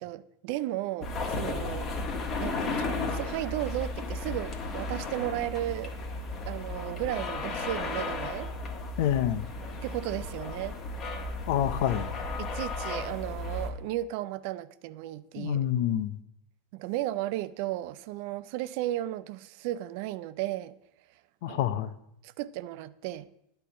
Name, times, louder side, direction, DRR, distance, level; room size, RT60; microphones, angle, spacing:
voice 1, 0.0-1.9 2.4-5.9 6.5-8.5 9.8-10.8 12.4-15.6 16.7-20.8 21.5-21.6 22.2-23.3, right 14 dB, 60° right, 0.4 m, -34 dB
sound 1, 1.0-13.7, left 3 dB, 40° left, 1.4 m, -34 dB
voice 2, 9.0-9.4 11.5-12.1 15.4-16.2 21.4-21.9, left 11 dB, 65° left, 0.6 m, -27 dB
9.8 x 4.5 x 6.8 m
hypercardioid pair, 90°, 0 cm